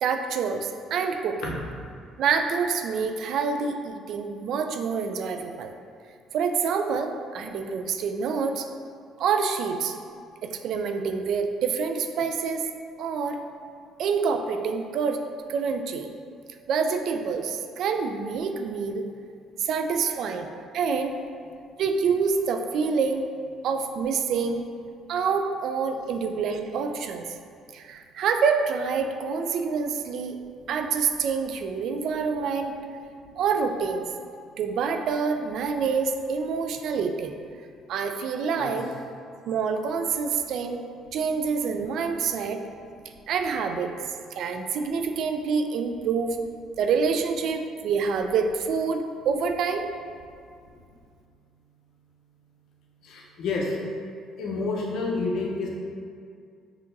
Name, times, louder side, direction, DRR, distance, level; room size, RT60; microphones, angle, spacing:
voice 1, 0.0-1.6 2.2-5.7 6.3-8.7 9.2-10.0 10.4-12.7 13.0-13.4 14.0-15.2 15.5-16.1 16.7-19.0 19.6-21.2 21.8-23.3 23.6-24.6 25.1-27.2 27.7-30.4 30.7-32.7 33.4-34.1 34.6-37.4 37.9-38.9 39.5-40.8 41.1-42.6 43.3-43.9 44.4-46.4 46.8-49.8, right 5 dB, 65° right, 6 dB, 0.3 m, -27 dB
voice 2, 53.0-53.8 54.4-55.7, left 3 dB, 70° left, -3 dB, 0.8 m, -29 dB
5.7 x 2.9 x 2.6 m, 2.3 s
cardioid pair, 105°, 0 cm